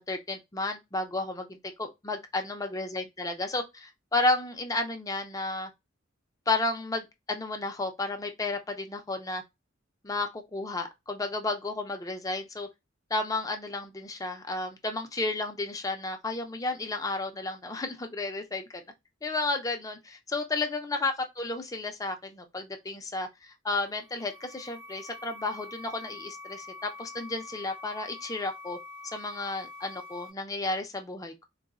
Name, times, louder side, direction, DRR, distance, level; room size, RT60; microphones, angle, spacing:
voice 1, 0.0-5.7 6.5-9.4 10.0-12.7 13.1-18.6 19.2-28.8 29.1-31.4, left 2 dB, 15° left, 0.5 m, -32 dB
sound 1, 23.8-30.3, left 3 dB, 60° right, 0.9 m, -45 dB
3.9 x 2.1 x 2.3 m
head